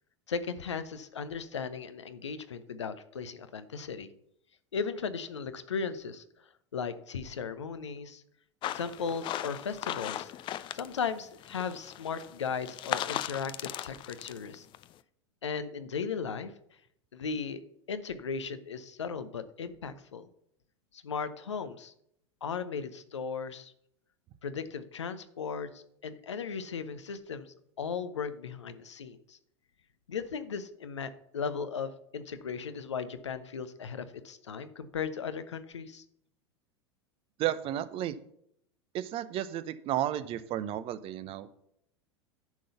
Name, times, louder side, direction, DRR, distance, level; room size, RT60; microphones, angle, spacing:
voice 1, 0.3-4.1 4.7-6.2 6.7-8.2 8.7-10.3 10.7-14.7 15.4-16.5 17.1-17.6 17.9-20.3 20.9-21.9 22.4-23.7 24.4-29.4 30.1-36.0, left 6 dB, 80° left, 11 dB, 0.7 m, -36 dB
sound 1, 8.6-11.1 11.4-14.9, left 12 dB, 35° left, 0.4 m, -37 dB
voice 2, 37.4-38.2 38.9-41.5, right 12 dB, 40° right, 15 dB, 0.7 m, -33 dB
10.5 x 3.9 x 6.8 m, 0.72 s
figure-of-eight pair, 85°, 15 cm